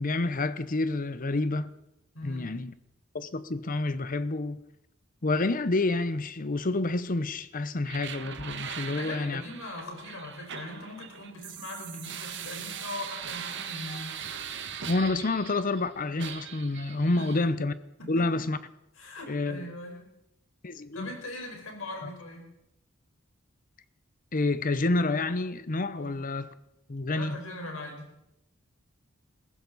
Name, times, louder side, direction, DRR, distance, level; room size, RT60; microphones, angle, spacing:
voice 1, 0.0-1.7 2.2-2.7 3.1-4.6 5.2-9.4 14.9-17.7 18.1-18.6 19.3-19.7 20.6-21.1 22.0-22.1 24.3-26.5 26.9-27.4, left 2 dB, 40° left, 0.8 m, -28 dB
voice 2, 2.1-2.6 8.8-14.3 17.1-17.3 18.0-18.4 19.0-20.1 20.9-22.5 25.9-26.1 27.1-28.1, left 2 dB, 80° left, 4.6 m, -40 dB
sound 1, 7.8-15.8 16.2-17.4, right 8 dB, 60° right, 1.4 m, -40 dB
21.5 x 15.5 x 4.1 m
head